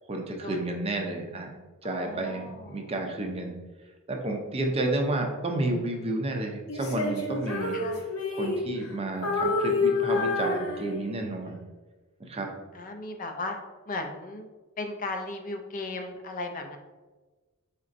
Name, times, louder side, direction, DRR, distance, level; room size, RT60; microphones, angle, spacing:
voice 1, 0.0-1.5 1.8-3.5 4.1-7.8 8.3-11.6 12.2-12.5, right 2 dB, 25° right, 2 dB, 0.5 m, -31 dB
voice 2, 1.8-2.9 7.7-8.1 12.7-13.6 13.9-14.5 14.8-16.8, left 2 dB, 40° left, 4 dB, 0.4 m, -36 dB
Female singing, 6.7-8.9 9.2-11.3, left 3 dB, 75° left, 0.8 m, -28 dB
4.3 x 4.0 x 2.5 m, 1.2 s
head